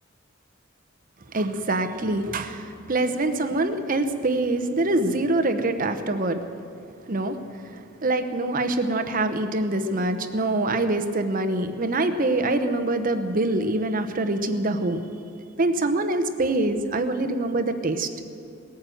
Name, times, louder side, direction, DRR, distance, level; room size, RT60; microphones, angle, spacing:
voice 1, 1.3-6.4 7.1-15.0 15.6-18.1, right 2 dB, 45° right, 9 dB, 0.9 m, -25 dB
18.5 x 9.5 x 7.7 m, 2.5 s
head